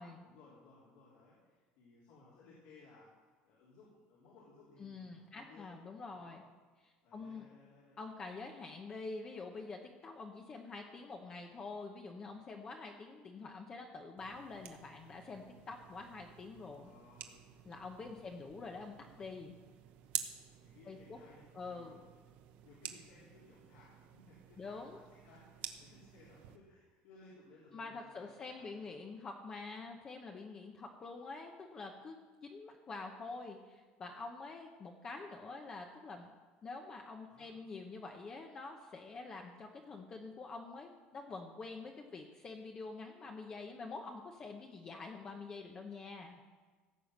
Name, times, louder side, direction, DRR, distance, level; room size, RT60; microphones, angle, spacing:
voice 1, 0.2-5.7 6.1-6.4 7.0-8.0 16.8-17.6 18.0-18.5 20.6-21.9 22.6-29.1 37.3-37.5, left 3 dB, 75° left, -6 dB, 3.6 m, -61 dB
voice 2, 4.8-6.4 6.8-7.4 8.0-16.9 17.7-19.5 20.9-21.2 21.5-22.0 24.6-25.0 27.7-36.3 36.6-46.4, left 3 dB, 25° left, 2 dB, 0.9 m, -47 dB
sound 1, 14.2-26.6, right 11 dB, 55° right, 1.1 m, -50 dB
16.5 x 7.7 x 6.5 m, 1.4 s
cardioid pair, 165°, 3 cm